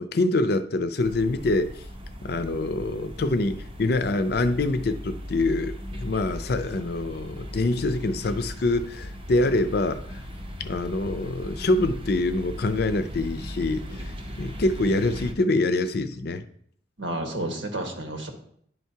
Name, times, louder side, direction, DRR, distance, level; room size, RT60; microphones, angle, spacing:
voice 1, 0.0-1.7 2.2-10.2 10.6-16.4, left 2 dB, 55° left, 10 dB, 0.5 m, -25 dB
sound 1, 1.0-15.3, equal, 30° right, 0.7 m, -38 dB
voice 2, 17.0-18.3, right 1 dB, 90° right, 3 dB, 1.5 m, -32 dB
11.0 x 4.5 x 2.8 m, 0.64 s
head